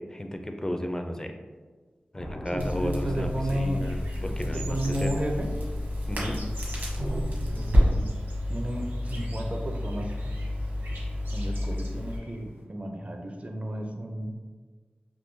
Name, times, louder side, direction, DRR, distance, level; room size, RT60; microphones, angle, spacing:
voice 1, 0.1-1.3 2.1-5.1 6.1-6.4, left 1 dB, 15° left, 4 dB, 0.4 m, -33 dB
sound 1, 2.1-4.1, left 1 dB, 90° left, 0.8 m, -43 dB
voice 2, 2.5-3.8 4.4-5.5 7.5-8.1 8.5-10.1 11.3-14.3, right 1 dB, 40° right, 3 dB, 0.5 m, -32 dB
Crackle, 2.6-12.2, left 1 dB, 60° right, 1.1 m, -29 dB
sound 2, 3.3-12.6, right 2 dB, 85° right, 0.6 m, -49 dB
3.6 x 2.6 x 2.6 m, 1.4 s
wide cardioid pair, 50°, 3 cm